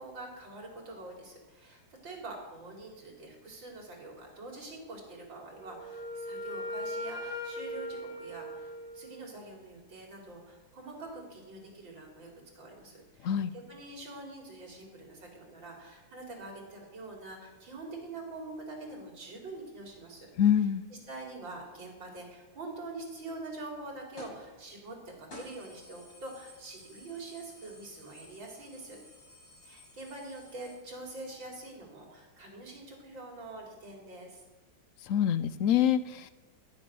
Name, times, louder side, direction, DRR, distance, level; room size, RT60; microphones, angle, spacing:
voice 1, 0.0-20.3 21.1-29.0 29.6-34.4, right 2 dB, 70° right, 0 dB, 4.1 m, -45 dB
Wind instrument woodwind instrument, 5.6-9.4, left 1 dB, 20° left, 1.9 m, -39 dB
voice 2, 20.4-20.8 35.0-36.3, left 9 dB, 85° left, 12 dB, 0.7 m, -26 dB
sound 1, 24.2-24.5 24.9-25.0 25.3-30.7, left 1 dB, 65° left, 6.8 m, -53 dB
18.5 x 10.0 x 6.2 m, 1.2 s
omnidirectional pair, 2.2 m